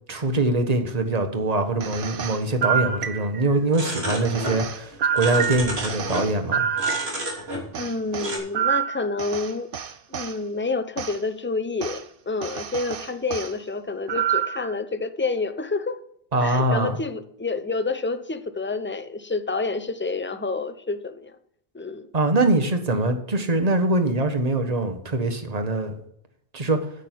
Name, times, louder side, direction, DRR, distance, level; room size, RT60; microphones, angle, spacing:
voice 1, 0.1-6.6 16.3-17.0 22.1-25.9 26.5-26.8, right 2 dB, 40° right, 1.4 m, -23 dB
sound 1, 1.8-3.6 4.2-7.4 7.7-10.3 11.0-11.2 11.8-12.0 12.4-13.5 14.1-14.7, right 8 dB, 60° right, 0.9 m, -27 dB
sound 2, 3.7-4.7 4.9-6.3 6.7-7.9 8.2-8.4, equal, 80° right, 3.5 m, -31 dB
voice 2, 7.8-9.7 10.1-16.0 16.4-21.3 21.7-22.1, left 3 dB, 15° left, 0.6 m, -28 dB
9.9 x 9.0 x 4.6 m
omnidirectional pair, 1.0 m